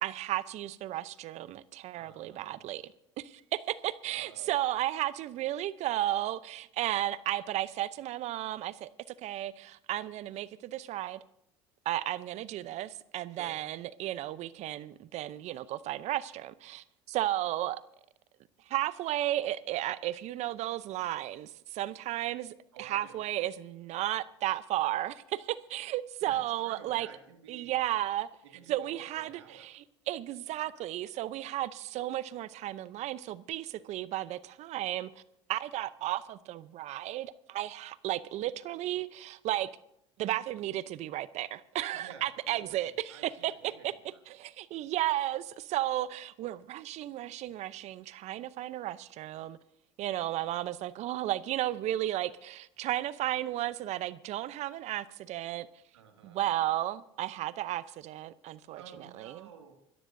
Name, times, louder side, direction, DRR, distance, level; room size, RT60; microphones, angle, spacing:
voice 1, 0.0-2.9 3.2-11.2 11.9-17.8 18.7-27.1 27.5-28.3 28.7-35.1 35.5-39.7 40.2-43.9 44.3-49.6 50.0-55.7 56.2-58.8 59.2-59.5, right 14 dB, 55° right, 0.7 m, -34 dB
voice 2, 1.9-2.6 4.1-4.5 13.3-13.6 22.7-23.2 26.2-27.7 28.5-29.7 41.9-44.2 55.9-56.4 58.7-59.7, right 7 dB, 90° right, 2.2 m, -52 dB
25.5 x 14.0 x 2.7 m
hypercardioid pair, 75°, 14 cm